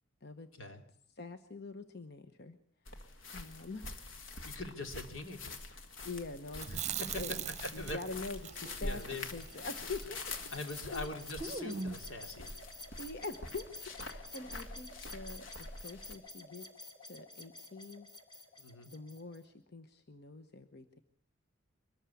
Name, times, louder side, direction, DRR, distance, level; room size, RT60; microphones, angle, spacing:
voice 1, 1.1-2.6 3.3-3.9 4.4-4.6 6.0-6.8 7.1-7.4 7.7-9.0 9.3-10.5 10.9-11.1 13.0-18.1 18.8-21.0, left 3 dB, 55° left, 9 dB, 1.0 m, -45 dB
sound 1, 2.9-16.1, left 2 dB, 70° left, 2.0 m, -46 dB
voice 2, 4.4-5.5 6.7-7.2 7.6-8.0 8.8-9.3 9.6-9.7 10.5-12.5 18.6-18.9, left 2 dB, 85° left, 5 dB, 2.9 m, -42 dB
Chewing mastication, 6.5-10.7 11.0-11.1 11.4-12.1, right 7 dB, 35° right, 0.7 m, -42 dB
sound 2, 8.4-19.4, left 2 dB, 25° left, 2.8 m, -51 dB
23.5 x 13.5 x 8.4 m, 0.63 s
head